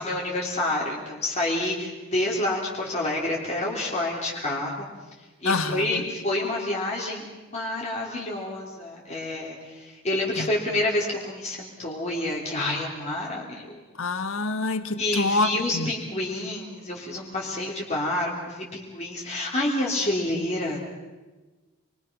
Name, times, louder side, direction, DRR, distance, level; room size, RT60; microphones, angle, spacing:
voice 1, 0.0-4.9 5.4-13.8 15.0-20.8, left 1 dB, 30° left, 3.3 m, -28 dB
voice 2, 5.4-6.0 10.4-10.5 14.0-15.9, left 3 dB, 70° left, 1.3 m, -26 dB
29.0 x 22.0 x 6.0 m
head